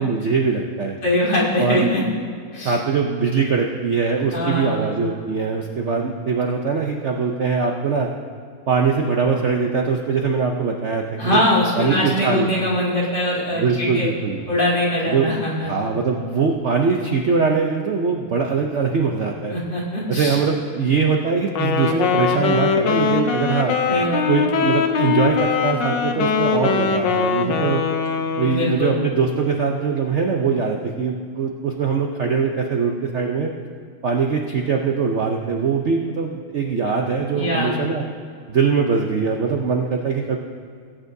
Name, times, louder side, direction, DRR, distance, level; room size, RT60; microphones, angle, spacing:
voice 1, 0.0-0.9 1.6-1.9 2.6-8.1 8.7-11.4 11.8-12.5 13.5-14.4 15.0-15.3 15.6-19.6 20.1-23.8 24.3-27.8 28.4-33.5 34.0-38.0 38.5-40.4, right 5 dB, 60° right, 2 dB, 0.7 m, -22 dB
voice 2, 1.0-2.0 2.5-2.8 4.3-4.9 11.2-14.1 14.5-15.7 19.5-20.4 23.9-24.5 28.4-29.0 37.3-37.8, left 1 dB, 65° left, -6 dB, 3.2 m, -22 dB
Wind instrument woodwind instrument, 21.5-28.7, left 5 dB, 80° left, 1.4 m, -21 dB
18.5 x 9.0 x 2.7 m, 2.3 s
omnidirectional pair, 1.9 m